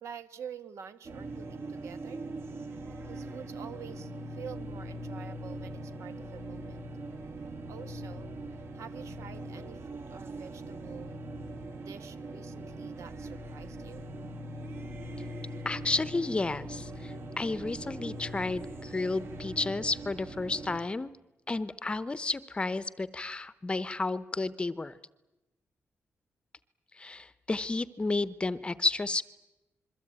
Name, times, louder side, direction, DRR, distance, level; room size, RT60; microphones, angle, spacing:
voice 1, 0.0-2.3 3.1-6.8 7.7-8.3 8.7-11.2 11.8-14.1, right 7 dB, 75° right, 10 dB, 1.9 m, -47 dB
sound 1, 1.0-20.8, right 1 dB, 50° right, 2.3 m, -41 dB
voice 2, 15.6-21.1 21.5-25.0 26.9-29.2, left 3 dB, 20° left, 16 dB, 0.8 m, -32 dB
27.5 x 22.5 x 9.0 m, 1.0 s
wide cardioid pair, 145°, 5 cm